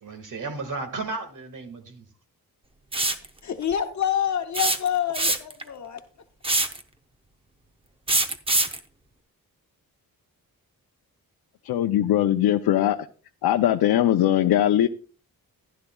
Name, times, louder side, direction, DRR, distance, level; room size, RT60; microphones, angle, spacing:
voice 1, 0.0-2.0, right 3 dB, 60° right, 1.9 m, -34 dB
sound 1, 2.9-3.3 4.5-5.6 6.4-6.8 8.1-8.8, right 2 dB, 15° right, 0.7 m, -23 dB
voice 2, 3.4-6.0, left 9 dB, 50° left, 0.8 m, -27 dB
voice 3, 11.6-13.0 13.4-14.9, left 12 dB, 85° left, 0.6 m, -20 dB
15.0 x 11.5 x 2.3 m
wide cardioid pair, 175°, 36 cm